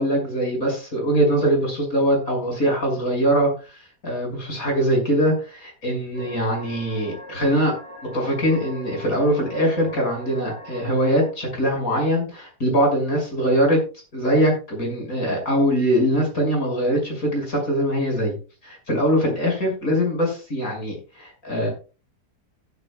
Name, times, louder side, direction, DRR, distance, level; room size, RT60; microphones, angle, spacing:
voice 1, 0.0-3.5 4.0-7.8 8.1-13.8 14.1-18.3 18.6-21.7, equal, 55° left, 1 dB, 6.9 m, -22 dB
sound 1, 6.1-11.3, equal, 40° left, 7.4 m, -41 dB
15.5 x 13.0 x 2.4 m, 0.33 s
omnidirectional pair, 1.7 m